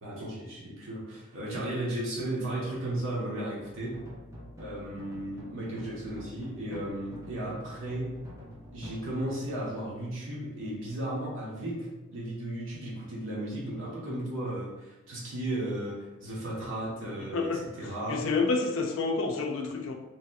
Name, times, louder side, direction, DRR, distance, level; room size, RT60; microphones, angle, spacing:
voice 1, 0.0-4.0 4.6-8.1 8.7-18.3, right 1 dB, 75° right, -6 dB, 1.1 m, -35 dB
sound 1, 3.6-10.8, equal, 15° right, 0.6 m, -48 dB
voice 2, 18.1-19.9, left 4 dB, 75° left, 3 dB, 0.4 m, -28 dB
3.2 x 2.8 x 2.3 m, 1.0 s
head